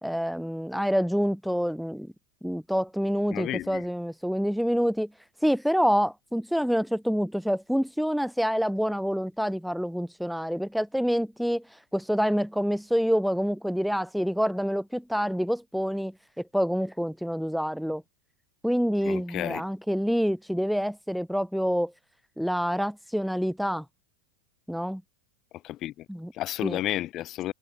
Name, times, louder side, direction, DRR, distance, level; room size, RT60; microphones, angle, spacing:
voice 1, 0.0-2.1 2.4-18.0 18.6-21.9 22.4-23.9 24.7-25.0 26.1-26.3 26.6-26.8, equal, ahead, 1.0 m, -27 dB
voice 2, 3.3-3.8 19.0-19.6 25.6-26.0 26.3-27.5, left 14 dB, 40° left, 7.9 m, -32 dB
supercardioid pair, 125°, 0 cm